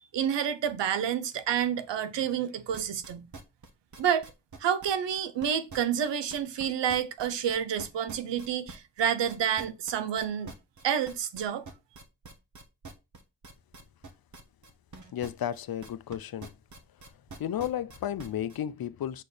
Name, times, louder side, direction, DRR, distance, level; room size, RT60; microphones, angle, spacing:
voice 1, 0.1-3.3 4.0-4.2 4.6-10.5 10.8-11.6, right 9 dB, 90° right, 0.8 m, -29 dB
sound 1, 2.7-6.6 6.9-16.1 16.4-18.6, right 3 dB, 45° right, 1.3 m, -46 dB
voice 2, 15.1-16.5 17.4-19.2, left 10 dB, 55° left, 0.6 m, -33 dB
6.3 x 4.4 x 3.4 m
wide cardioid pair, 100°, 42 cm